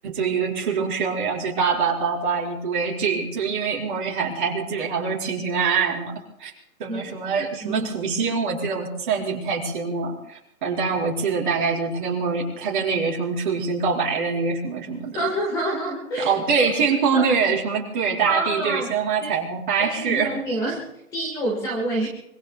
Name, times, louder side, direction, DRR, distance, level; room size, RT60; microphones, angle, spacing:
voice 1, 0.0-6.5 6.8-15.2 16.2-20.3, right 5 dB, 30° right, -2 dB, 4.5 m, -24 dB
voice 2, 7.3-7.9 15.1-16.7 17.1-17.2 18.3-18.9 19.2-19.3 19.8-22.1, right 1 dB, 10° left, -2 dB, 1.5 m, -27 dB
26.0 x 24.0 x 2.3 m, 0.77 s
hypercardioid pair, 165°, 46 cm